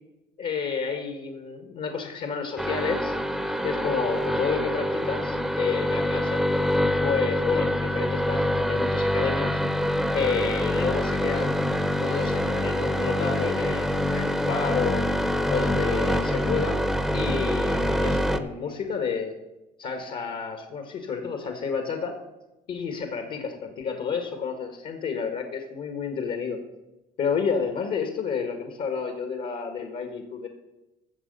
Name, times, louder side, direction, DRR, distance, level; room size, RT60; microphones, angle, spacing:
voice 1, 0.4-3.1 3.6-6.4 7.0-9.6 10.1-11.6 12.0-15.0 15.5-16.8 17.1-19.4 19.8-22.1 22.7-26.6 27.2-30.5, left 6 dB, 60° left, 6 dB, 1.6 m, -30 dB
sound 1, 2.6-18.4, equal, ahead, 0.8 m, -25 dB
14.5 x 7.1 x 5.4 m, 0.99 s
cardioid pair, 110°, 17 cm